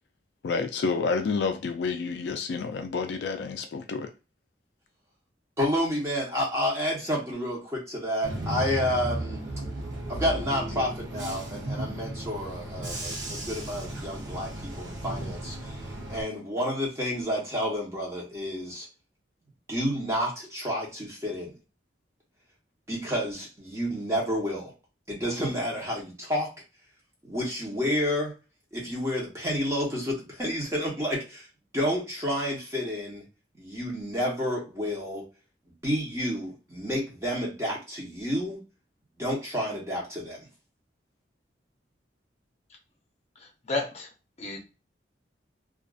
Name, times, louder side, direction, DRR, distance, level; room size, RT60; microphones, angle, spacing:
voice 1, 0.4-4.1, left 4 dB, 65° left, 0.3 m, -29 dB
voice 2, 5.6-9.4 10.1-15.8 16.1-18.9 19.7-21.5 22.9-24.7 25.1-26.5 27.2-28.3 28.7-31.5 31.7-33.2 33.6-35.2 35.8-38.6 39.2-40.5, equal, 15° right, 0.9 m, -30 dB
Bus / Engine, 8.2-16.2, right 1 dB, 85° right, 0.7 m, -35 dB
voice 3, 43.4-44.1 44.4-44.6, left 3 dB, 35° left, 0.7 m, -32 dB
2.5 x 2.3 x 2.4 m
head